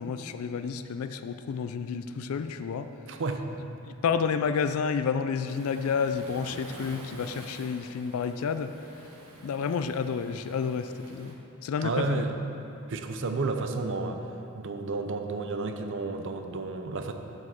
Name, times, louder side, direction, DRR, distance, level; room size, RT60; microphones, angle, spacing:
voice 1, 0.0-2.9 3.9-8.7 9.4-11.4 11.6-12.3, left 6 dB, 70° left, 10 dB, 0.4 m, -30 dB
voice 2, 3.1-3.5 11.8-12.4 12.9-14.2 14.5-17.1, right 3 dB, 55° right, 6 dB, 0.6 m, -31 dB
Waves surf, 5.5-11.3, right 1 dB, 70° right, 1.3 m, -48 dB
7.8 x 5.2 x 7.2 m, 3.0 s
head